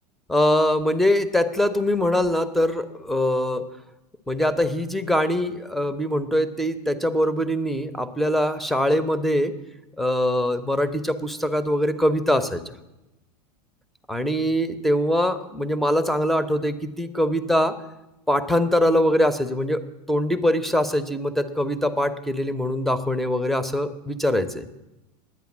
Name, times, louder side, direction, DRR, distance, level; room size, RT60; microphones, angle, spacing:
voice 1, 0.3-3.6 4.3-9.5 10.0-12.6 14.1-17.7 18.3-19.8 20.1-24.6, left 1 dB, ahead, 12 dB, 0.9 m, -23 dB
11.0 x 9.1 x 7.3 m, 0.96 s
hypercardioid pair, 95°, 21 cm